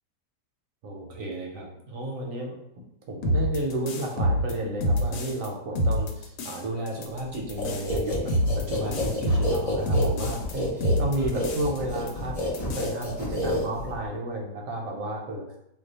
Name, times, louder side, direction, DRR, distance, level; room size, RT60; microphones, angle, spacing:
voice 1, 0.8-2.5 3.1-15.4, right 1 dB, 65° right, 0 dB, 0.9 m, -32 dB
sound 1, 3.2-5.5 5.8-6.6 6.9-10.5 10.8-11.8 12.1-12.2 12.4-13.1, equal, 90° left, 1.2 m, -26 dB
sound 2, 7.6-14.1, left 1 dB, 75° left, 0.3 m, -30 dB
2.7 x 2.2 x 3.9 m, 0.76 s
omnidirectional pair, 1.8 m